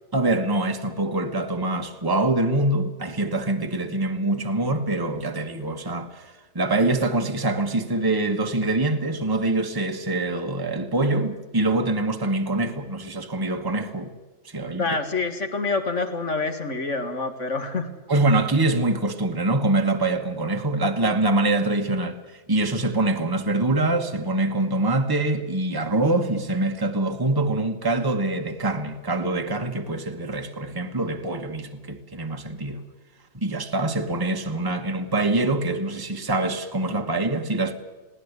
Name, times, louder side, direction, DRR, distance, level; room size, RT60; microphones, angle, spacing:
voice 1, 0.1-14.1 14.4-14.9 18.1-22.2 22.5-32.8 33.3-37.7, right 2 dB, 15° right, 1.4 m, -24 dB
voice 2, 14.8-17.9, left 3 dB, 45° left, 2.2 m, -27 dB
20.5 x 17.5 x 8.3 m
omnidirectional pair, 1.7 m